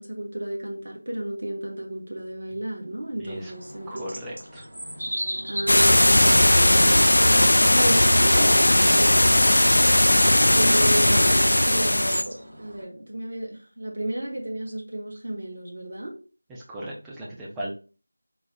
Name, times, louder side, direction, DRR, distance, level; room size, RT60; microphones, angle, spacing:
voice 1, 0.0-4.2 5.4-7.0 7.7-9.2 10.4-16.1, right 1 dB, 60° right, 0 dB, 1.3 m, -32 dB
voice 2, 3.2-3.5 3.9-4.7 16.7-17.7, equal, 5° right, -5 dB, 0.5 m, -36 dB
sound 1, 3.3-12.8, equal, 75° right, 1.4 m, -37 dB
sound 2, 5.7-12.2, left 1 dB, 80° left, 0.3 m, -18 dB
3.9 x 2.1 x 4.0 m, 0.36 s
figure-of-eight pair, 175°, 0 cm